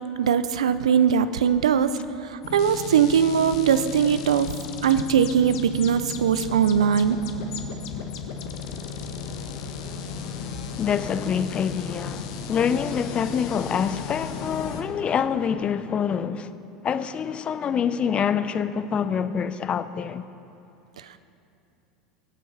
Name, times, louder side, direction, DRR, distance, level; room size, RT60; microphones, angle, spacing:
voice 1, 0.0-1.9 2.5-4.5 4.8-7.2, right 8 dB, 85° right, 0.6 m, -20 dB
sound 1, 2.4-14.8, left 6 dB, 65° left, 1.5 m, -35 dB
voice 2, 10.8-16.5 16.8-20.3, left 7 dB, 35° left, 0.7 m, -26 dB
22.0 x 8.4 x 5.8 m
hypercardioid pair, 85°, 3 cm